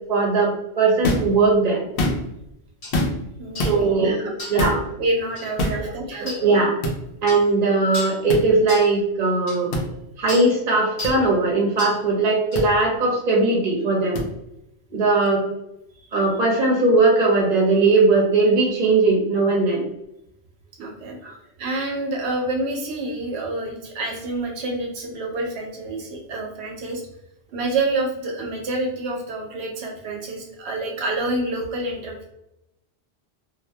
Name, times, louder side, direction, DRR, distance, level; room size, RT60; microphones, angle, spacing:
voice 1, 0.1-1.8 3.6-4.8 5.7-6.7 7.2-9.8 10.2-14.2 14.9-15.5 16.1-19.8 21.2-21.4, right 3 dB, 45° right, -1 dB, 0.8 m, -19 dB
sound 1, 1.0-1.3 1.8-2.4 2.9-3.3 3.6-3.8 4.6-4.8 5.6-5.8 6.8-7.0 8.3-8.4 9.7-9.9 11.0-11.1 12.5-12.7 14.2-14.3, left 1 dB, 85° left, 0.8 m, -24 dB
sound 2, 2.8-3.0 3.6-3.8 4.4-4.7 5.4-5.5 6.3-6.4 7.3-7.5 7.9-8.2 8.7-8.9 9.5-9.6 10.3-10.5 11.0-11.2 11.8-12.0 12.5-12.7, left 1 dB, 40° left, 0.8 m, -34 dB
voice 2, 3.4-4.3 5.0-6.4 20.8-21.2 21.6-27.0 27.5-32.3, right 2 dB, 85° right, 1 dB, 0.8 m, -28 dB
2.4 x 2.0 x 2.7 m, 0.85 s
omnidirectional pair, 1.1 m